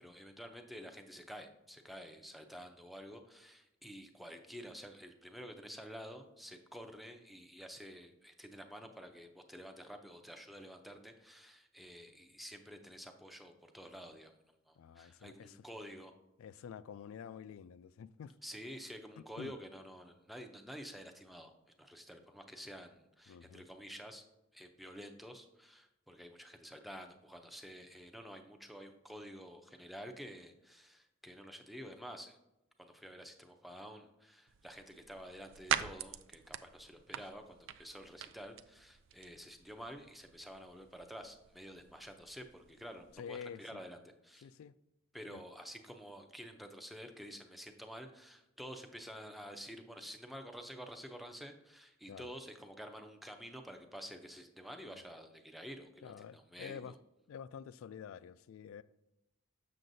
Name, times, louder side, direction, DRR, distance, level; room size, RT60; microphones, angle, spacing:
voice 1, 0.0-14.4 14.7-16.1 18.4-21.5 21.8-24.2 24.5-32.4 32.8-44.0 44.2-44.5 45.1-57.0, equal, ahead, 0.5 m, -50 dB
voice 2, 14.8-15.6 16.4-18.4 19.2-19.5 23.3-23.6 43.1-43.8 44.4-44.7 45.3-45.4 52.1-52.3 56.0-57.0 57.3-58.8, left 7 dB, 85° left, 0.3 m, -48 dB
sound 1, 34.5-43.1, right 10 dB, 65° right, 0.3 m, -44 dB
7.6 x 6.4 x 2.6 m
head